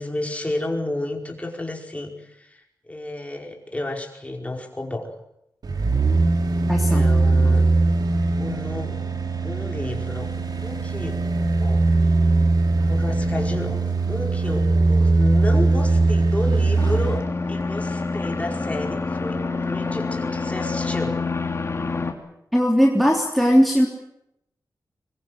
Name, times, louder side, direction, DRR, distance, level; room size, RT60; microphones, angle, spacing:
voice 1, 0.0-5.1 6.5-7.6 8.4-9.0 9.4-10.3 10.6-11.2 11.6-11.8 12.8-13.8 14.1-21.2, left 1 dB, 20° left, 2 dB, 5.1 m, -31 dB
sound 1, 5.6-17.2 17.6-17.7, right 3 dB, 65° right, 3.1 m, -20 dB
voice 2, 6.7-7.0 22.5-23.9, equal, ahead, -1 dB, 3.3 m, -18 dB
sound 2, 16.8-22.1, left 3 dB, 35° left, 3.2 m, -27 dB
24.5 x 22.0 x 7.9 m, 0.79 s
wide cardioid pair, 90°, 7 cm